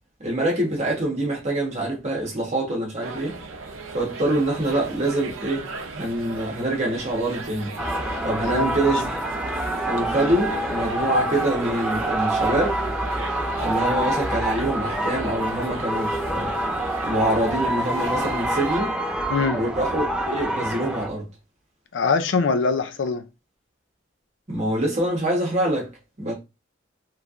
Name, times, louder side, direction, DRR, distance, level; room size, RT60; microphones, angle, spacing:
voice 1, 0.2-3.3 3.9-7.7 8.2-9.2 9.8-12.8 13.6-16.7 17.0-19.0 19.5-21.2 24.5-25.9 26.2-26.3, right 1 dB, 35° right, 1.2 m, -25 dB
sound 1, 3.0-18.8, right 4 dB, 80° right, 0.6 m, -37 dB
sound 2, 7.8-21.1, right 1 dB, 5° right, 0.4 m, -26 dB
voice 2, 8.4-8.8 19.3-19.6 21.9-23.2, left 4 dB, 65° left, 0.4 m, -23 dB
3.2 x 3.1 x 2.5 m
head